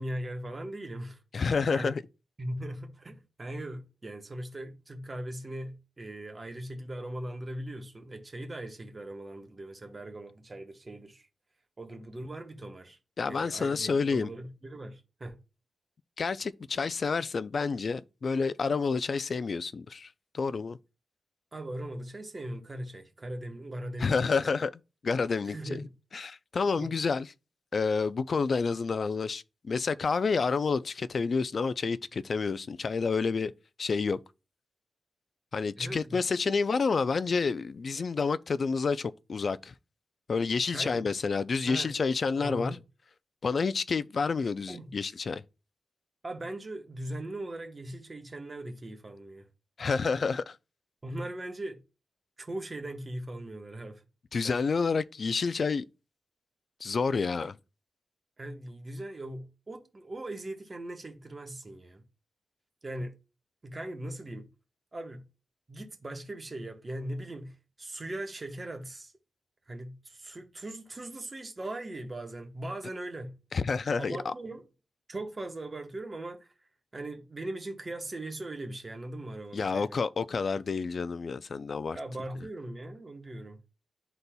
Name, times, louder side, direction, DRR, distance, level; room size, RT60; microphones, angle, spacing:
voice 1, 0.0-1.2 1.7-1.9 2.4-11.3 11.8-15.4 21.5-24.4 25.4-25.9 26.8-26.9 35.8-36.2 40.7-41.1 41.7-41.9 42.4-42.8 44.7-44.9 46.2-49.5 51.0-51.8 52.4-54.0 58.4-62.0 62.8-63.2 63.6-64.5 64.9-65.2 65.7-69.1 69.7-73.3 74.0-74.7 75.1-76.5 76.9-80.0 81.9-83.6, right 1 dB, 30° right, 1.0 m, -39 dB
voice 2, 1.3-2.0 13.2-14.3 16.2-20.1 20.3-20.8 24.0-24.7 25.0-25.8 26.1-27.3 27.7-33.5 33.8-34.2 35.5-39.7 40.3-42.8 43.4-45.4 49.8-50.6 54.3-55.8 56.8-57.6 73.5-74.3 79.5-82.0, left 5 dB, 50° left, 0.3 m, -29 dB
11.5 x 4.0 x 2.2 m
wide cardioid pair, 130°, 0 cm